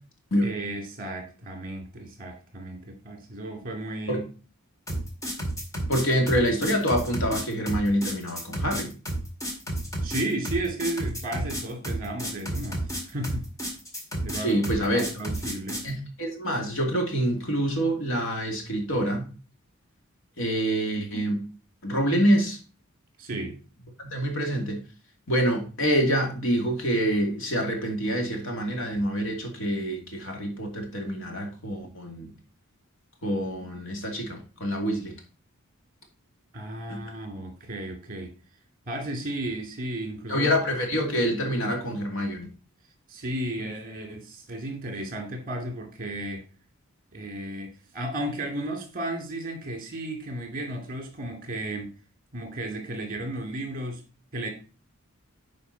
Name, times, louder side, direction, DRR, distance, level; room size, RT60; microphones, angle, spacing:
voice 1, 0.4-4.3 10.0-13.5 14.2-14.6 14.9-15.8 23.2-23.6 36.5-38.3 38.9-40.5 43.1-46.5 47.1-51.9 52.3-54.0 54.3-54.5, right 1 dB, 40° right, 2.6 m, -34 dB
sound 1, 4.9-15.9, right 1 dB, 15° left, 2.0 m, -31 dB
voice 2, 5.9-8.9 14.4-15.0 15.8-19.3 20.4-21.4 21.8-22.6 23.3-23.4 24.0-24.8 25.3-32.3 33.2-35.1 36.9-37.0 40.3-42.5, equal, 65° left, 2.5 m, -26 dB
9.8 x 5.0 x 4.0 m
head